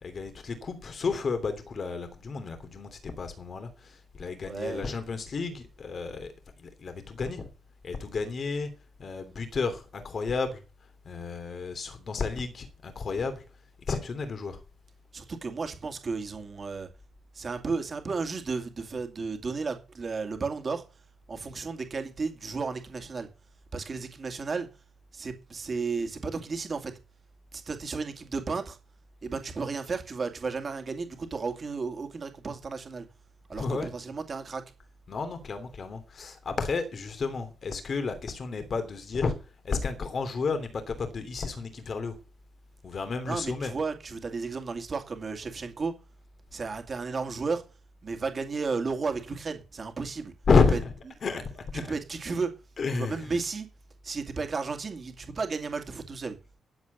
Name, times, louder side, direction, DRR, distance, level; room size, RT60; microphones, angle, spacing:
voice 1, 0.0-7.5 7.8-8.7 9.0-10.6 11.0-13.4 13.9-14.6 33.5-33.9 35.1-39.4 39.6-42.2 42.8-43.7 50.5-50.9 51.2-52.0 52.8-53.4, left 4 dB, 40° left, 3.0 m, -31 dB
voice 2, 4.5-4.9 15.1-16.9 17.3-20.8 21.3-23.3 23.7-24.7 25.1-26.9 27.5-28.8 29.2-33.1 33.5-34.6 43.2-45.9 46.5-47.6 48.0-50.3 50.7-50.8 51.7-52.5 53.0-53.7 54.0-56.4, right 4 dB, 30° right, 2.4 m, -33 dB
12.0 x 8.0 x 7.9 m
wide cardioid pair, 170°, 0 cm